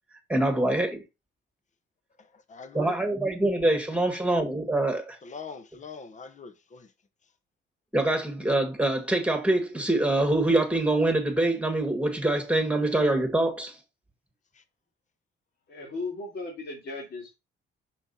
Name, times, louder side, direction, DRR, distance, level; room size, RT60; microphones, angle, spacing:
voice 1, 0.3-1.0 2.7-5.2 7.9-13.8, right 2 dB, 5° right, 2.0 m, -25 dB
voice 2, 2.2-3.0 5.2-6.9 14.5-14.6, left 5 dB, 40° left, 1.1 m, -42 dB
voice 3, 15.7-17.4, left 3 dB, 55° left, 2.9 m, -36 dB
6.0 x 5.9 x 4.3 m
cardioid pair, 90°, 20 cm